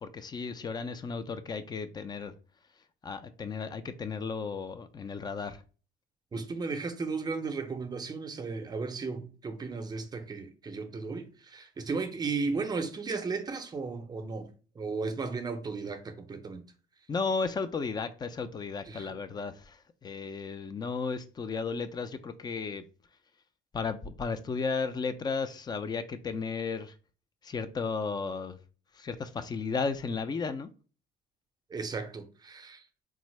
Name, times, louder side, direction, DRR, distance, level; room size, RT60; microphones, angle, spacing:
voice 1, 0.0-2.3 3.0-5.6 17.1-22.8 23.7-26.9 27.4-28.6 29.0-30.7, left 4 dB, 25° left, 0.4 m, -34 dB
voice 2, 6.3-16.6 18.9-19.2 31.7-33.0, right 4 dB, 25° right, 0.6 m, -35 dB
3.5 x 2.1 x 3.1 m
cardioid pair, 110°, 17 cm